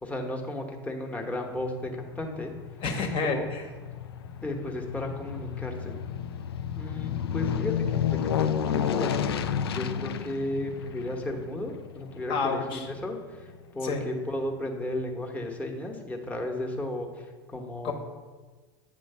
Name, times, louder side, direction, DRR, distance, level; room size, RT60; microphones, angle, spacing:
voice 1, 0.0-2.5 3.3-3.5 4.4-6.0 6.8-9.4 9.6-17.9, left 1 dB, 10° left, 1 dB, 1.0 m, -34 dB
Aircraft, 1.5-14.1 14.5-14.6, left 8 dB, 70° left, 0.4 m, -32 dB
voice 2, 2.8-3.7 12.3-12.9 13.8-14.0 17.8-17.9, left 4 dB, 40° left, 2 dB, 1.1 m, -29 dB
8.6 x 3.1 x 5.6 m, 1.4 s
figure-of-eight pair, 85°, 13 cm